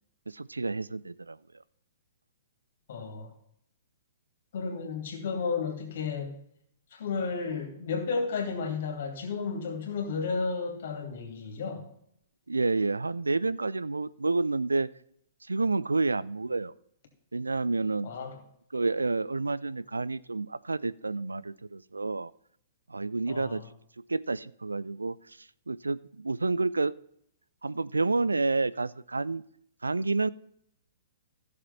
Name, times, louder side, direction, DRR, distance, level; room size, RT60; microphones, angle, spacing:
voice 1, 0.3-1.4 12.5-14.9 15.4-16.7 17.3-18.1 18.7-22.3 22.9-23.6 24.1-26.9 27.6-29.4 29.8-30.3, right 3 dB, 80° right, 18 dB, 0.4 m, -29 dB
voice 2, 2.9-3.3 4.5-6.3 6.9-11.9 18.0-18.4 23.3-23.7, left 5 dB, 55° left, 4 dB, 2.8 m, -33 dB
15.0 x 6.7 x 4.2 m, 0.70 s
figure-of-eight pair, 115°, 0 cm